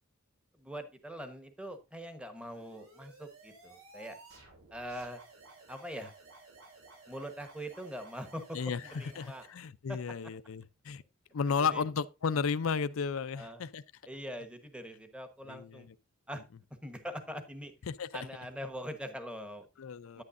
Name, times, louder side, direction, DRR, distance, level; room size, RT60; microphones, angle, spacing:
voice 1, 0.6-4.2 4.7-5.2 5.7-6.1 7.1-9.4 9.9-10.0 11.7-11.8 13.3-13.6 14.1-15.9 16.3-16.4 16.8-17.7 18.1-19.7 20.2-20.3, equal, 5° right, 1.1 m, -42 dB
sound 1, 2.4-9.5, right 3 dB, 85° right, 2.9 m, -55 dB
voice 2, 8.5-11.0 11.3-13.8 15.5-16.0 17.8-18.3 19.8-20.2, left 5 dB, 80° left, 0.5 m, -34 dB
9.8 x 9.3 x 2.5 m
head